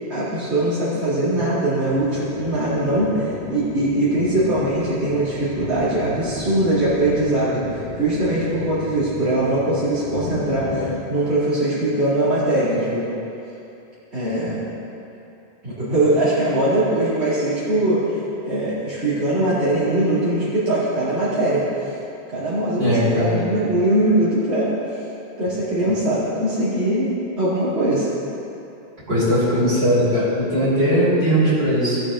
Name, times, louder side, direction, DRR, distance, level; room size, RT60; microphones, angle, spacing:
voice 1, 0.1-13.1 14.1-14.6 15.6-21.9 22.3-24.8 25.4-28.1, right 1 dB, 90° right, -12 dB, 2.6 m, -21 dB
sound 1, 1.9-11.0, left 4 dB, 60° left, 1.0 m, -34 dB
voice 2, 22.8-23.5 29.1-32.0, equal, 65° right, -9 dB, 3.4 m, -19 dB
17.5 x 7.1 x 3.7 m, 2.8 s
omnidirectional pair, 1.1 m